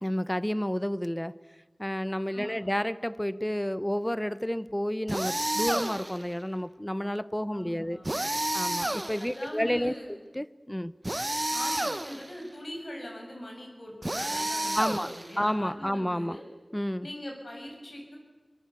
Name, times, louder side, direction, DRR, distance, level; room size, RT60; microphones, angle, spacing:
voice 1, 0.0-1.3 1.8-8.0 8.5-9.9 10.3-10.9 14.7-16.4 16.7-17.1, equal, 10° left, 0.9 m, -30 dB
sound 1, 5.1-6.2 8.0-9.5 11.0-12.3 14.0-15.4, right 1 dB, 35° right, 1.5 m, -31 dB
voice 2, 7.5-8.1 9.2-10.1 11.5-16.4 17.0-18.2, equal, 75° left, 7.2 m, -42 dB
24.5 x 24.0 x 8.4 m
wide cardioid pair, 40°, 0 cm